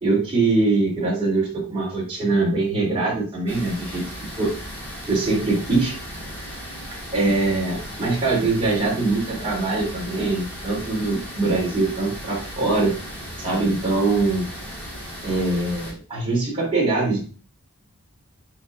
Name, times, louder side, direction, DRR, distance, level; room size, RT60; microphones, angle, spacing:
voice 1, 0.0-4.0 4.4-4.5 5.1-6.0 7.1-12.9 13.4-14.4 15.2-17.2, right 3 dB, 25° right, -5 dB, 2.9 m, -22 dB
sound 1, 3.5-15.9, equal, 10° left, 2.9 m, -36 dB
6.9 x 5.6 x 2.5 m, 0.37 s
head